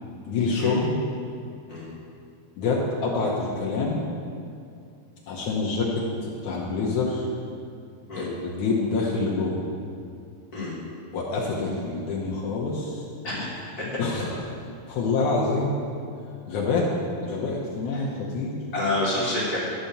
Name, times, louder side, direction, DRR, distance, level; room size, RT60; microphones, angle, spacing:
voice 1, 0.3-1.0 2.6-4.0 5.3-7.3 8.1-9.6 11.1-13.0 14.0-14.3 14.9-15.7 16.5-16.9 17.2-18.6, left 3 dB, 70° left, -4 dB, 1.8 m, -26 dB
voice 2, 13.2-14.0 17.9-18.0 18.7-19.6, left 2 dB, 25° left, -9 dB, 2.4 m, -28 dB
12.0 x 4.4 x 6.7 m, 2.5 s
omnidirectional pair, 4.7 m